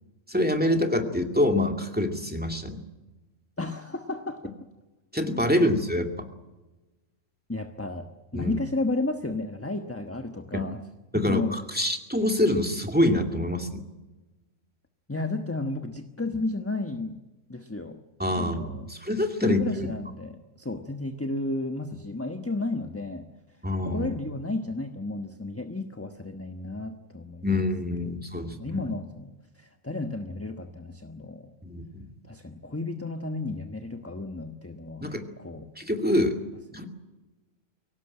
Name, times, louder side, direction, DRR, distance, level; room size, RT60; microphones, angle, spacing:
voice 1, 0.3-2.8 5.1-6.3 8.3-8.6 10.5-10.6 11.1-13.8 18.2-19.9 23.6-24.1 27.4-28.8 31.6-32.1 35.0-35.2 35.8-36.4 36.7-36.9, left 1 dB, 5° right, 4 dB, 2.4 m, -26 dB
voice 2, 3.6-4.5 5.3-5.7 7.5-10.8 11.1-11.5 15.1-17.2 17.5-18.0 18.3-18.9 19.4-23.3 23.8-27.6 28.0-31.5 32.3-35.7 36.7-36.8, left 2 dB, 10° left, 6 dB, 1.1 m, -33 dB
23.5 x 18.0 x 8.9 m, 1.1 s
omnidirectional pair, 1.3 m